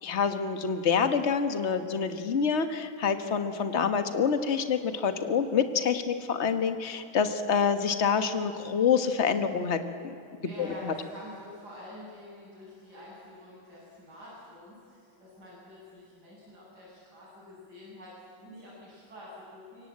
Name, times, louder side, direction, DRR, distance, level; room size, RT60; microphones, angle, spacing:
voice 1, 0.0-10.1 10.6-10.9, left 6 dB, 35° left, 8 dB, 1.6 m, -27 dB
voice 2, 10.4-19.9, left 1 dB, 50° right, -7 dB, 7.9 m, -47 dB
27.0 x 23.5 x 8.8 m, 2.6 s
omnidirectional pair, 2.3 m